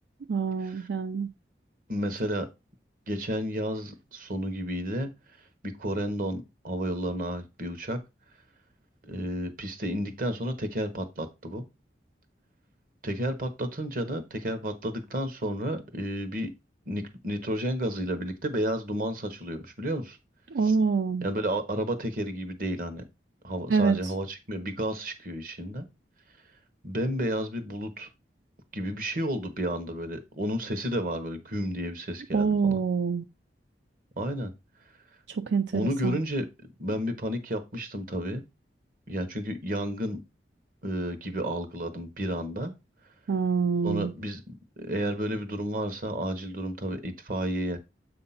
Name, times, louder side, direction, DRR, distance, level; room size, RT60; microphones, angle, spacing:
voice 1, 0.3-1.3 20.5-21.2 23.7-24.0 32.3-33.2 35.4-36.2 43.3-44.1, right 5 dB, 85° right, 0.4 m, -26 dB
voice 2, 1.9-2.5 3.1-5.1 5.8-8.0 9.0-11.6 13.0-16.5 16.9-20.2 20.6-20.8 21.2-23.0 23.4-25.8 26.8-28.1 28.7-32.8 34.2-34.5 35.7-36.5 36.8-38.4 39.1-40.2 40.8-42.7 43.8-47.8, equal, 50° right, 1.1 m, -31 dB
7.7 x 2.8 x 5.7 m
head